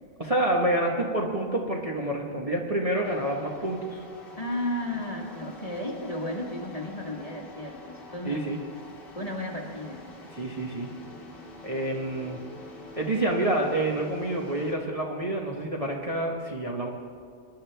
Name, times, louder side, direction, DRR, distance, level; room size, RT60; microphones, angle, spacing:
voice 1, 0.2-4.0 8.2-8.6 10.3-10.9 11.6-12.4 13.0-16.9, right 1 dB, 25° right, -2 dB, 1.1 m, -28 dB
sound 1, 3.0-14.7, left 2 dB, 40° left, 1.6 m, -46 dB
voice 2, 4.4-8.4 9.1-10.0, left 1 dB, 25° left, 0 dB, 1.4 m, -33 dB
21.5 x 11.0 x 3.4 m, 2.1 s
omnidirectional pair, 1.5 m